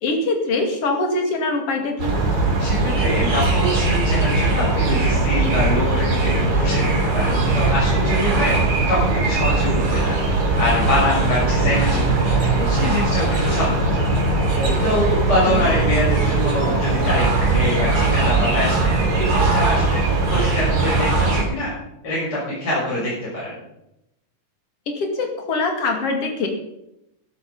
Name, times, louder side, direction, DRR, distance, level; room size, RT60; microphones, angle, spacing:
voice 1, 0.0-2.1 15.5-15.6 24.9-26.5, left 3 dB, 50° left, 3 dB, 3.2 m, -23 dB
sound 1, 2.0-21.4, right 3 dB, 70° right, 4.8 m, -20 dB
voice 2, 2.6-8.6 8.9-10.2 10.6-14.1 14.8-20.0 20.3-21.8 22.0-23.5, left 1 dB, 30° left, -8 dB, 6.5 m, -24 dB
13.5 x 11.5 x 5.4 m, 0.85 s
omnidirectional pair, 3.6 m